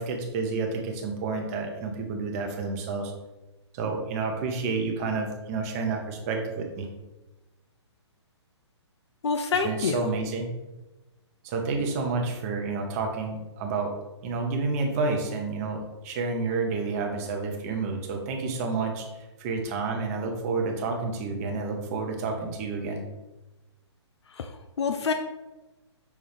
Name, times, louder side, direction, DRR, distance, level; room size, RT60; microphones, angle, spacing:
voice 1, 0.0-3.1 3.7-6.9 9.6-10.5 11.4-13.9 14.2-23.0, right 4 dB, 30° right, 3 dB, 0.8 m, -30 dB
voice 2, 9.2-10.0 24.3-25.1, left 5 dB, 70° left, 7 dB, 0.4 m, -27 dB
5.6 x 2.2 x 3.4 m, 1.1 s
hypercardioid pair, 135°, 15 cm